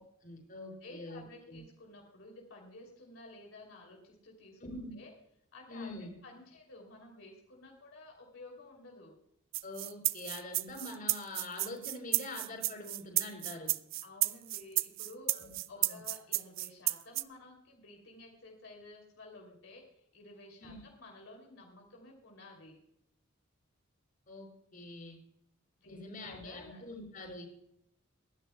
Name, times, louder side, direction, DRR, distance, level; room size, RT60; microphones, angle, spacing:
voice 1, 0.0-1.2 1.5-1.6 4.6-4.9 5.7-6.1 9.6-13.7 15.3-15.5 15.8-16.0 20.6-20.8 24.3-25.2 25.8-27.5, left 2 dB, 40° left, 2 dB, 4.7 m, -44 dB
voice 2, 0.8-4.6 4.9-5.1 5.5-9.2 14.0-15.3 15.7-22.8 25.8-26.8, left 2 dB, 75° left, 0 dB, 2.9 m, -53 dB
sound 1, 9.5-17.2, right 17 dB, 65° right, 0.5 m, -32 dB
22.5 x 11.0 x 2.2 m, 0.77 s
head